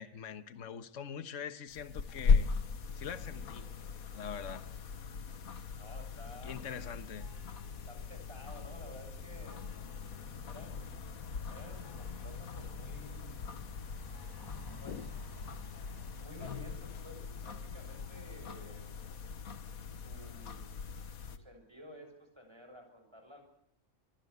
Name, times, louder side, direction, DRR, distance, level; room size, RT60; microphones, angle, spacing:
voice 1, 0.0-2.5 3.0-3.8 4.1-4.7 6.4-7.3, left 7 dB, 60° left, 1.6 m, -43 dB
sound 1, 1.7-21.4, left 5 dB, 90° left, 1.8 m, -38 dB
voice 2, 5.8-6.6 7.7-9.7 10.4-11.0 11.5-13.5 14.8-15.1 16.2-18.9 20.0-20.7 21.2-23.4, equal, 20° right, 6.9 m, -53 dB
sound 2, 6.1-16.3, left 2 dB, 20° left, 1.0 m, -55 dB
27.5 x 21.0 x 8.1 m
omnidirectional pair, 1.5 m